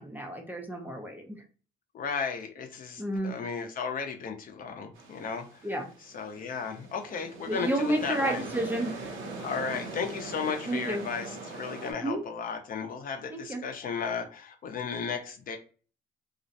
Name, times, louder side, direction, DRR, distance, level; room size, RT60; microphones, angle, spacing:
voice 1, 0.0-1.4 3.0-3.3 5.6-5.9 7.5-9.1 10.7-11.0 12.0-12.2 13.3-13.6, right 1 dB, 10° right, 2 dB, 0.3 m, -31 dB
voice 2, 1.9-5.7 6.0-8.4 9.4-15.6, left 5 dB, 45° left, 5 dB, 0.5 m, -35 dB
sound 1, 5.0-11.9, right 3 dB, 85° right, 0.7 m, -41 dB
2.4 x 2.0 x 2.6 m, 0.39 s
cardioid pair, 130°, 20 cm